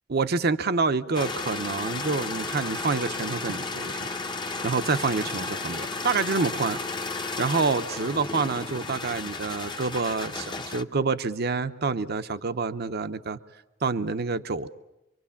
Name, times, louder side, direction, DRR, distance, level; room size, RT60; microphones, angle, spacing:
voice 1, 0.1-4.0 4.6-6.8 7.4-13.4 13.8-14.7, right 4 dB, 55° right, 11 dB, 0.8 m, -27 dB
sound 1, 1.1-10.8, left 3 dB, 25° left, 0.8 m, -33 dB
25.5 x 24.0 x 7.1 m, 0.98 s
head